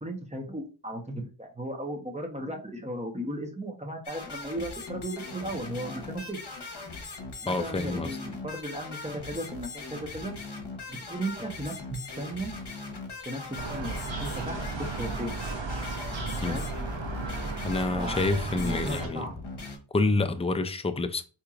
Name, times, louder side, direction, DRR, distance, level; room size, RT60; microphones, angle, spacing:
voice 1, 0.0-6.4 7.4-10.3 10.9-12.5 13.2-15.4 16.4-16.7 17.9-18.2 18.5-19.3, right 1 dB, 15° right, 0.9 m, -36 dB
sound 1, 4.0-19.8, left 3 dB, 55° left, 1.1 m, -40 dB
voice 2, 7.5-8.2 16.4-16.6 17.6-19.3 19.9-21.2, left 2 dB, 15° left, 0.4 m, -28 dB
sound 2, 13.6-19.1, right 3 dB, 65° right, 0.8 m, -34 dB
4.4 x 2.9 x 2.5 m
wide cardioid pair, 65°, 49 cm